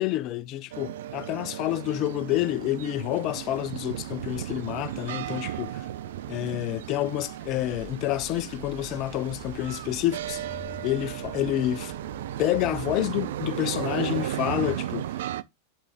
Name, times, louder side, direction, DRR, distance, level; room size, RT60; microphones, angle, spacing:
voice 1, 0.0-5.8 6.3-10.4 10.8-11.9 12.4-15.1, left 14 dB, 40° left, 0.5 m, -28 dB
sound 1, 0.7-15.4, right 12 dB, 55° right, 0.4 m, -35 dB
sound 2, 3.3-12.4, equal, 75° left, 0.9 m, -52 dB
sound 3, 7.4-14.8, right 4 dB, 15° right, 1.2 m, -46 dB
7.1 x 4.7 x 3.5 m
figure-of-eight pair, 90°, 0 cm